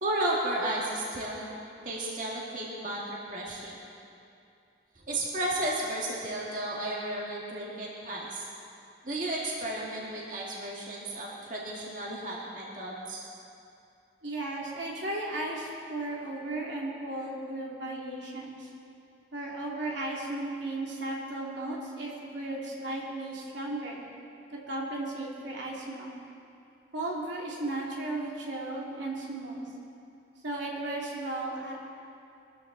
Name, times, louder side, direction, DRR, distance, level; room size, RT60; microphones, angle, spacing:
voice 1, 0.0-3.8 5.1-8.4 9.0-13.2, right 1 dB, 45° right, -4 dB, 2.1 m, -33 dB
voice 2, 14.2-18.7 19.3-24.0 24.5-26.2 26.9-29.7 30.4-31.9, right 2 dB, 80° right, -3 dB, 2.7 m, -35 dB
21.5 x 14.0 x 4.0 m, 2.6 s
head